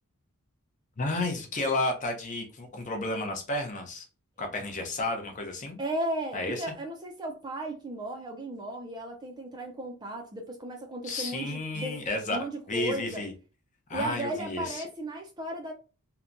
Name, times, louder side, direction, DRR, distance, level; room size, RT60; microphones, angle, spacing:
voice 1, 1.0-4.0 4.4-5.8 6.3-6.6 11.0-12.4 12.7-13.3 13.9-14.9, left 2 dB, 35° left, 0.6 m, -32 dB
voice 2, 5.8-12.0 12.3-13.2 13.9-15.7, right 1 dB, 20° right, 0.4 m, -35 dB
2.8 x 2.2 x 2.5 m
head